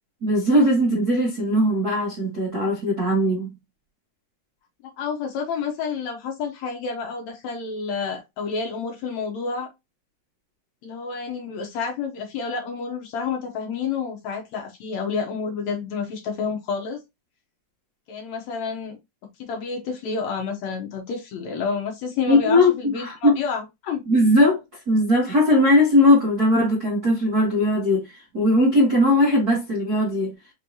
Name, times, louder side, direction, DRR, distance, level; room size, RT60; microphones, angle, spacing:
voice 1, 0.2-3.5 22.3-23.4 24.1-24.6 24.9-30.3, left 1 dB, 80° right, 0.8 m, -19 dB
voice 2, 5.0-9.7 10.8-17.0 18.1-19.0 19.4-24.0, left 5 dB, 70° left, 1.7 m, -29 dB
5.3 x 3.2 x 2.7 m
omnidirectional pair, 4.2 m